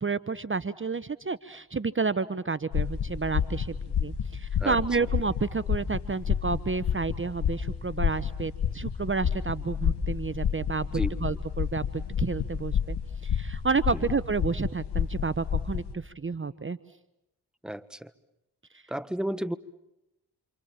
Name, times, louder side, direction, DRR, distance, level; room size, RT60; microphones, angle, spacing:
voice 1, 0.0-13.0 13.2-16.8 18.7-18.8, right 4 dB, 30° right, 16 dB, 1.1 m, -30 dB
sound 1, 2.7-15.9, left 8 dB, 85° left, 1.8 m, -30 dB
voice 2, 17.6-18.1 18.9-19.6, equal, ahead, 14 dB, 1.5 m, -32 dB
28.0 x 27.0 x 7.4 m, 0.85 s
cardioid pair, 50°, 40 cm